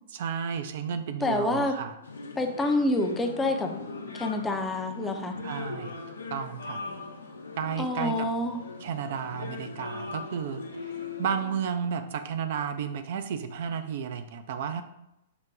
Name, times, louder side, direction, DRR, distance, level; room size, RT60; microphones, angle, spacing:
voice 1, 0.1-1.9 5.4-6.0 6.3-6.9 7.6-8.3 8.8-10.6 11.2-14.8, right 7 dB, 60° right, 8 dB, 0.4 m, -32 dB
voice 2, 1.2-1.8 2.4-3.7 4.1-5.4 7.8-8.6, left 2 dB, 15° left, 4 dB, 0.5 m, -27 dB
sound 1, 2.0-11.6, left 4 dB, 80° left, 0.7 m, -40 dB
5.1 x 2.2 x 4.7 m, 0.86 s
figure-of-eight pair, 110°, 0 cm